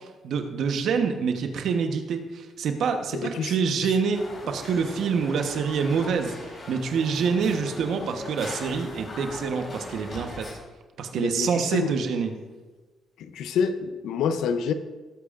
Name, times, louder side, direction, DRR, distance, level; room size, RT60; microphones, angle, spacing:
voice 1, 0.0-6.3 6.7-10.5 11.0-12.3, right 5 dB, 70° right, 6 dB, 1.1 m, -26 dB
voice 2, 3.1-3.6 4.4-4.8 11.2-11.9 13.2-14.7, left 6 dB, 80° left, 10 dB, 0.7 m, -28 dB
sound 1, 4.1-10.5, left 2 dB, 45° left, 3.6 m, -40 dB
18.0 x 8.4 x 2.6 m, 1.3 s
supercardioid pair, 60°, 0 cm